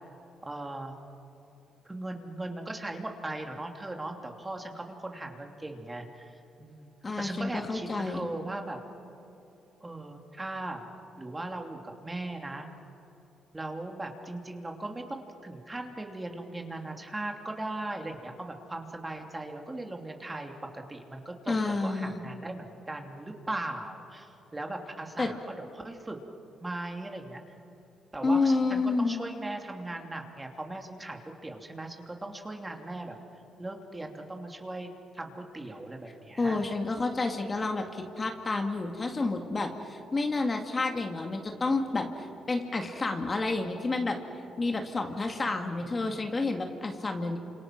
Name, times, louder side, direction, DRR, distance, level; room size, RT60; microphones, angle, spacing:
voice 1, 0.4-0.9 1.8-8.8 9.8-10.9 11.2-12.7 13.5-26.2 26.6-27.4 28.1-33.2 33.6-34.9 35.1-36.6 45.8-46.1, right 2 dB, 15° right, 3 dB, 2.9 m, -38 dB
voice 2, 7.0-8.3 21.5-22.2 25.2-25.3 28.2-29.2 36.4-44.2 44.6-47.4, left 3 dB, 30° left, 4 dB, 2.3 m, -29 dB
29.0 x 27.0 x 6.1 m, 2.9 s
cardioid pair, 90°, 0 cm